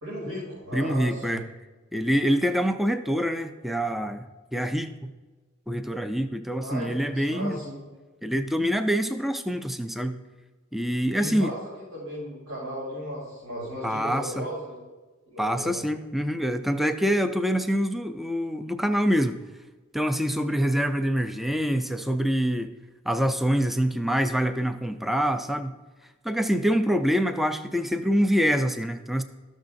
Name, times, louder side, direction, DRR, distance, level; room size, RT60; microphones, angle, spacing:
voice 1, 0.0-1.4 6.6-6.9 7.3-7.7 11.2-14.8 15.3-15.8, equal, 90° right, -8 dB, 2.7 m, -35 dB
voice 2, 0.7-1.4 1.9-5.1 5.7-7.6 8.2-10.2 10.7-11.5 13.8-14.4 15.4-19.4 19.9-22.7 23.1-25.7 26.2-29.2, equal, ahead, 8 dB, 0.3 m, -25 dB
12.5 x 6.4 x 2.6 m, 1.3 s
head